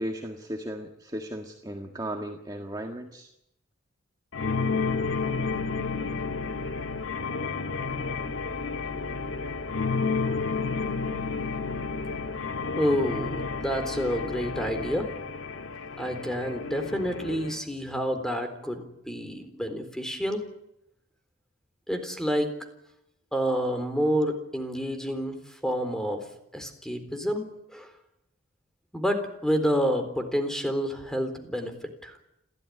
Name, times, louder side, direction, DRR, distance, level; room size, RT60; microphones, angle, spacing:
voice 1, 0.0-3.3, right 1 dB, 20° right, 2 dB, 1.7 m, -35 dB
sound 1, 4.3-17.6, left 4 dB, 80° left, 1.7 m, -31 dB
voice 2, 12.8-15.1 16.0-20.4 21.9-22.6 23.3-26.2 26.5-27.9 28.9-31.7 32.0-32.2, equal, 5° left, 7 dB, 3.8 m, -29 dB
30.0 x 13.5 x 10.0 m, 0.81 s
head